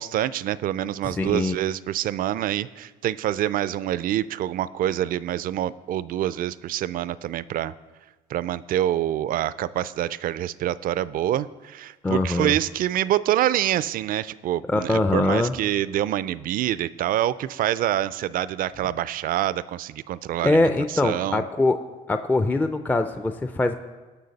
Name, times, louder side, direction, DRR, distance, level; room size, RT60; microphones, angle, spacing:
voice 1, 0.0-7.7 8.3-20.7 21.0-21.4, right 12 dB, 55° right, 18 dB, 0.4 m, -26 dB
voice 2, 1.0-1.6 12.0-12.6 14.7-15.5 20.4-21.8 22.1-23.7, left 2 dB, 10° left, 9 dB, 0.4 m, -22 dB
18.0 x 6.3 x 4.0 m, 1.3 s
cardioid pair, 110°, 17 cm